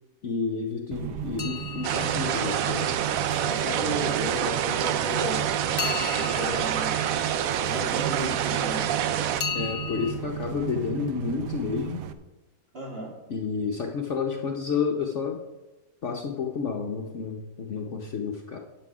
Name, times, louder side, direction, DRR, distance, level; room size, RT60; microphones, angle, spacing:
voice 1, 0.2-2.9 9.5-12.0 13.3-15.4 16.0-18.6, left 5 dB, 55° left, 2 dB, 1.0 m, -30 dB
sound 1, 0.9-12.1, right 11 dB, 85° right, 1.3 m, -35 dB
sound 2, 1.4-3.4 5.8-8.2 9.4-10.1, left 7 dB, 75° left, 0.4 m, -36 dB
sound 3, 1.8-9.4, right 9 dB, 70° right, 0.9 m, -27 dB
voice 2, 3.4-5.5 6.1-8.9 12.7-13.1, equal, 35° right, -2 dB, 2.4 m, -35 dB
8.9 x 8.1 x 4.8 m, 1.0 s
omnidirectional pair, 1.8 m